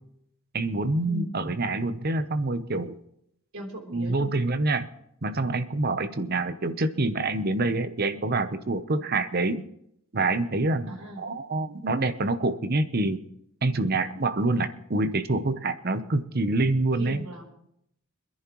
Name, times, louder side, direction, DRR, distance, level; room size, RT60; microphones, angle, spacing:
voice 1, 0.5-3.0 3.9-4.9 5.2-9.6 10.1-13.2 13.6-17.2, right 2 dB, 45° right, 11 dB, 0.8 m, -26 dB
voice 2, 3.5-4.3 10.9-11.3 17.0-17.4, equal, 80° right, 2 dB, 3.7 m, -37 dB
26.0 x 10.5 x 3.1 m, 0.75 s
head